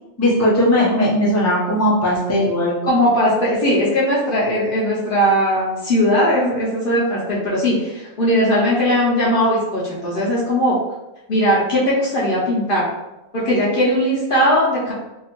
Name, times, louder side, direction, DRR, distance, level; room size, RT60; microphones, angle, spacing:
voice 1, 0.2-2.8, left 1 dB, 20° left, -6 dB, 0.4 m, -17 dB
voice 2, 2.8-10.8 11.3-12.8 13.3-14.9, equal, 50° left, -6 dB, 0.7 m, -18 dB
2.8 x 2.5 x 2.8 m, 0.97 s
omnidirectional pair, 1.4 m